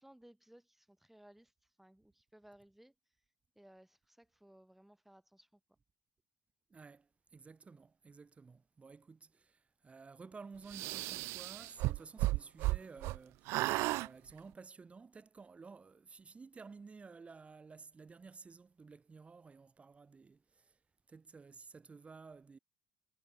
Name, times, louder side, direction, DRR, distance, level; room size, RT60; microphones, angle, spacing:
voice 1, 0.0-1.5 1.8-2.9 3.6-5.6, right 1 dB, 5° right, 4.1 m, -61 dB
voice 2, 6.7-20.8 21.1-22.6, right 4 dB, 30° right, 4.2 m, -54 dB
sound 1, 10.7-13.2 13.5-14.1, right 20 dB, 80° right, 1.0 m, -34 dB
supercardioid pair, 85°, 4 cm